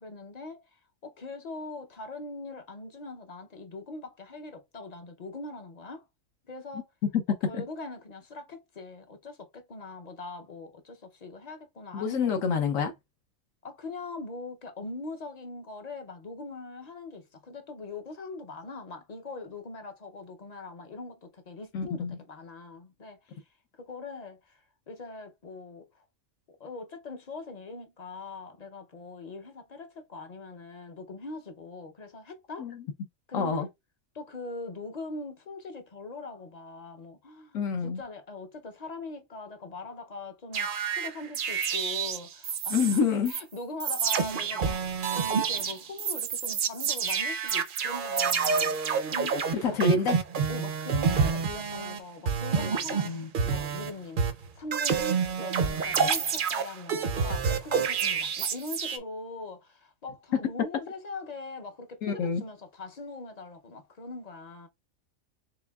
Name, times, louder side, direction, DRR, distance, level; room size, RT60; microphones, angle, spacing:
voice 1, 0.0-6.1 6.5-6.9 7.3-12.4 13.6-23.4 23.7-26.0 26.6-32.7 33.3-33.7 34.1-49.8 50.5-54.3 54.6-64.7, left 3 dB, 45° left, 0.5 m, -41 dB
voice 2, 11.9-12.9 21.7-22.2 32.6-32.8 33.3-33.7 37.5-38.0 42.7-43.3 49.6-50.2 52.6-52.7 53.0-53.3 62.0-62.4, left 5 dB, 75° left, 1.1 m, -27 dB
sound 1, 40.5-43.0 43.3-43.4 43.8-52.0 52.3-53.9 54.2-59.0, right 6 dB, 55° right, 0.6 m, -28 dB
4.9 x 3.4 x 2.3 m
omnidirectional pair, 1.4 m